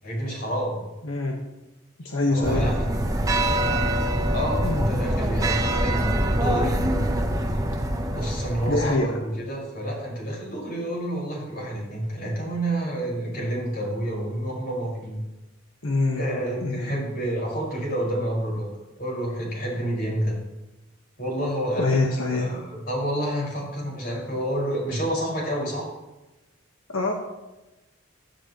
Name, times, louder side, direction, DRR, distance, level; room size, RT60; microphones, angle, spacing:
voice 1, 0.0-0.8 2.3-2.9 4.3-6.7 8.1-15.2 16.2-18.7 19.0-20.3 21.2-25.9, right 1 dB, 45° left, -3 dB, 5.7 m, -29 dB
voice 2, 1.0-1.4 2.0-2.7 4.6-5.1 8.6-9.2 15.8-16.3 16.6-17.0 21.7-22.6 26.9-27.1, left 2 dB, 90° left, 1 dB, 1.5 m, -25 dB
sound 1, 2.4-8.9, right 1 dB, 15° right, 0.9 m, -24 dB
15.5 x 13.5 x 3.2 m, 1.0 s
head